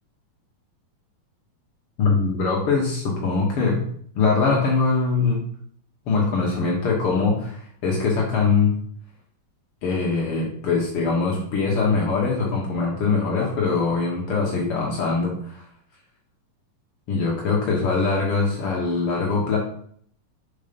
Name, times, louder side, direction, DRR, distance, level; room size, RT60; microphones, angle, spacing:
voice 1, 2.0-3.9 4.1-5.4 6.1-8.7 9.8-15.6 17.1-19.6, left 4 dB, 80° left, -3 dB, 1.2 m, -22 dB
5.4 x 4.7 x 5.2 m, 0.62 s
omnidirectional pair, 4.3 m